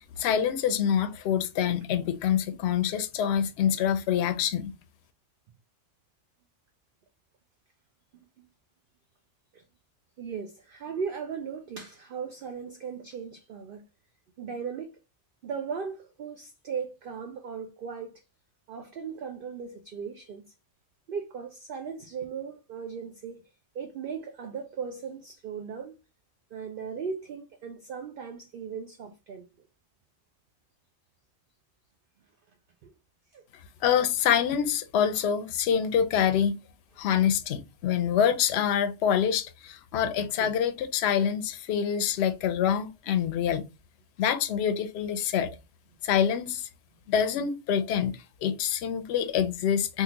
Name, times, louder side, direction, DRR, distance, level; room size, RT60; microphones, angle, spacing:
voice 1, 0.2-4.7 33.8-36.6 37.0-43.6 44.2-45.5 46.0-46.7 47.1-48.1 48.4-50.0, left 8 dB, 65° left, 0.7 m, -26 dB
voice 2, 10.2-13.8 14.4-14.9 15.4-18.2 18.7-20.4 21.1-23.4 23.7-25.9 26.5-29.5 32.8-32.9 33.3-33.4 40.4-40.5, right 6 dB, 60° right, 0.6 m, -37 dB
3.6 x 2.3 x 2.8 m
omnidirectional pair, 1.3 m